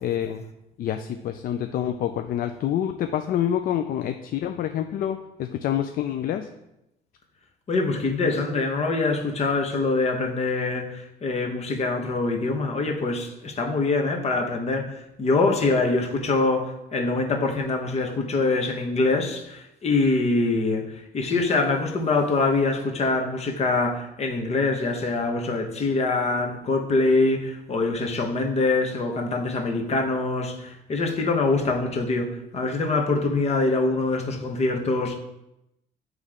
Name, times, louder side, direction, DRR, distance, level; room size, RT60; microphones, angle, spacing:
voice 1, 0.0-0.4 0.8-6.5, left 10 dB, 60° left, 7 dB, 0.4 m, -27 dB
voice 2, 7.7-20.8 21.1-35.2, left 3 dB, 40° left, 2 dB, 1.1 m, -24 dB
9.4 x 3.2 x 3.7 m, 0.88 s
cardioid pair, 110°, 17 cm